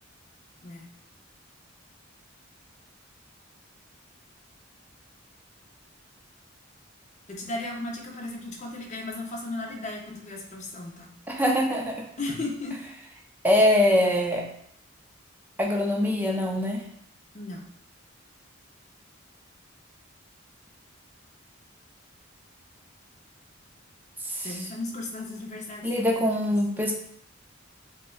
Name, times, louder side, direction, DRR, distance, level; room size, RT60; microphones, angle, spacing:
voice 1, 7.3-11.1 12.2-12.8 17.3-17.7 24.4-26.5, left 2 dB, 35° left, 0 dB, 0.6 m, -35 dB
voice 2, 11.3-12.0 13.4-14.5 15.6-16.9 24.2-24.5 25.8-26.9, left 1 dB, 10° right, 0 dB, 0.5 m, -23 dB
5.2 x 2.2 x 2.3 m, 0.69 s
head